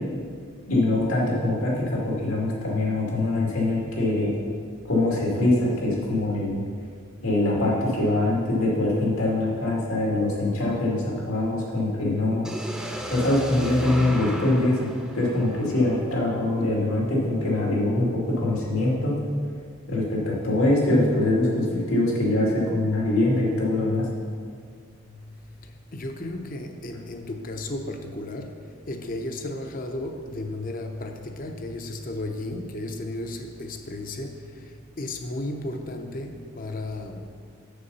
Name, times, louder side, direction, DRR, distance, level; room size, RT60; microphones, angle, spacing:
voice 1, 0.7-4.3 4.9-6.6 7.2-12.4 13.1-14.9 15.1-19.2 19.9-24.1, left 2 dB, 90° left, -4 dB, 2.4 m, -23 dB
sound 1, 12.4-16.4, equal, 5° right, 0.7 m, -35 dB
voice 2, 25.6-37.3, left 1 dB, 40° left, 5 dB, 0.7 m, -34 dB
7.7 x 6.8 x 5.5 m, 2.1 s
head